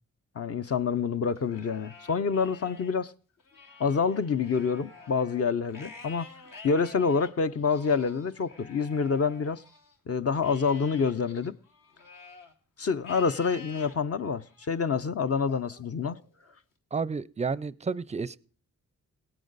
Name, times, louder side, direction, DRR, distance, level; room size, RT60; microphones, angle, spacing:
voice 1, 0.4-3.1 3.8-6.3 6.6-9.6 10.1-11.6 12.8-16.2, left 5 dB, 45° left, 0.6 m, -27 dB
Livestock farm animals working animals, 1.4-2.9 3.4-9.9 10.4-12.5 13.0-13.9 14.5-14.9 15.5-16.6, left 4 dB, 70° left, 1.6 m, -50 dB
voice 2, 16.9-18.4, right 5 dB, 20° right, 0.4 m, -31 dB
17.0 x 9.0 x 4.0 m
cardioid pair, 65°, 33 cm